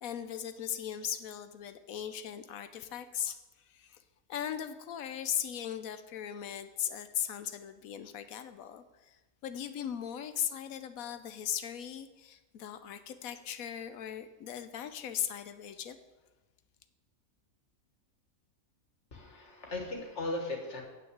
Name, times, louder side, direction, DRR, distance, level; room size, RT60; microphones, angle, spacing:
voice 1, 0.0-3.4 3.6-4.0 4.3-16.0, left 9 dB, 80° left, 10 dB, 1.1 m, -38 dB
voice 2, 19.1-20.8, left 2 dB, 55° left, 1 dB, 2.0 m, -37 dB
8.8 x 5.9 x 7.8 m, 1.1 s
omnidirectional pair, 1.5 m